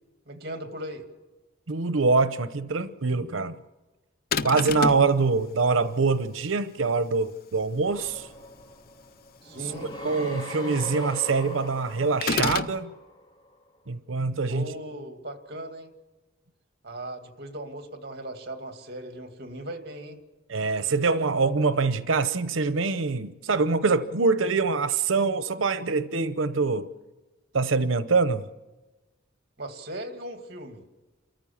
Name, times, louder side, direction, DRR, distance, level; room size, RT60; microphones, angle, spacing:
voice 1, 0.3-1.1 9.4-9.9 14.5-15.9 16.8-20.2 29.6-30.8, right 1 dB, 55° right, 6 dB, 2.3 m, -38 dB
voice 2, 1.7-3.5 4.4-8.3 10.0-12.9 13.9-14.7 20.5-26.9 27.5-28.5, right 4 dB, 85° right, 12 dB, 0.8 m, -24 dB
sound 1, 4.3-5.1 12.2-12.8, left 5 dB, 50° left, 0.6 m, -27 dB
sound 2, 7.8-13.5, left 1 dB, 25° left, 2.4 m, -40 dB
28.5 x 14.5 x 7.3 m, 1.2 s
head